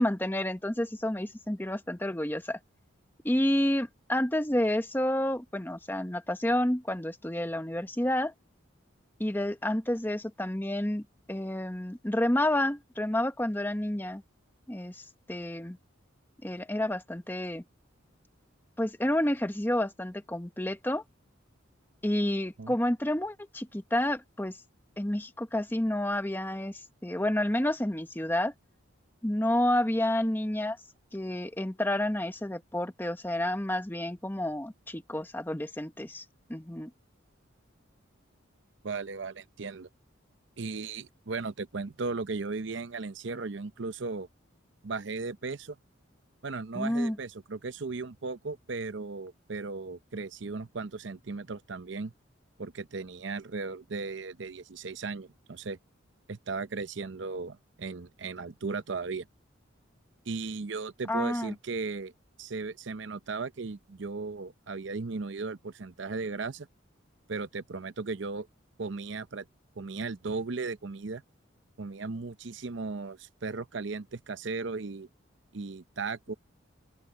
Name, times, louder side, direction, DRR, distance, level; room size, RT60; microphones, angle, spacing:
voice 1, 0.0-2.6 3.2-8.3 9.2-11.0 11.3-14.2 14.7-15.8 16.4-17.6 18.8-21.0 22.0-24.6 25.0-28.5 29.2-30.8 31.1-36.2 36.5-36.9 46.7-47.2 61.1-61.5, left 1 dB, 10° left, 0.9 m, -29 dB
voice 2, 38.8-39.9 40.6-44.3 44.8-45.8 46.4-52.1 52.6-55.8 56.3-59.3 60.3-62.1 62.4-66.7 67.3-68.5 68.8-69.4 69.8-71.2 71.8-75.1 75.5-76.3, right 4 dB, 65° right, 0.7 m, -36 dB
open air
head